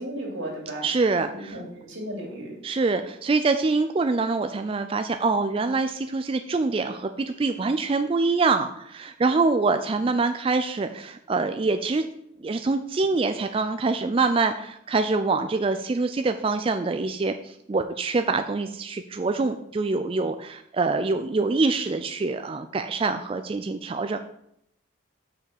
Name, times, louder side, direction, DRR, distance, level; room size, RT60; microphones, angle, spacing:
voice 1, 0.0-0.9 1.3-2.6, right 1 dB, 85° right, -1 dB, 2.7 m, -35 dB
voice 2, 0.8-1.5 2.6-12.0 12.4-24.2, right 3 dB, 30° right, 8 dB, 0.3 m, -25 dB
5.9 x 5.3 x 6.6 m, 0.75 s
head